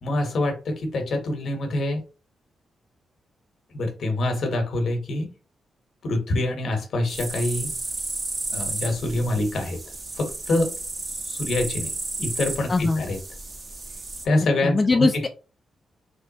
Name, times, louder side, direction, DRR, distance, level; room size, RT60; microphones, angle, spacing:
voice 1, 0.0-2.0 3.7-5.3 6.0-7.8 8.5-9.8 10.2-10.7 11.3-11.9 12.2-13.2 14.2-15.2, left 2 dB, 65° left, 1.0 m, -25 dB
sound 1, 7.1-14.3, right 2 dB, 35° right, 0.8 m, -33 dB
voice 2, 12.7-13.0 14.6-15.3, left 3 dB, 25° left, 0.3 m, -21 dB
3.4 x 3.1 x 2.8 m
cardioid pair, 110°, 0 cm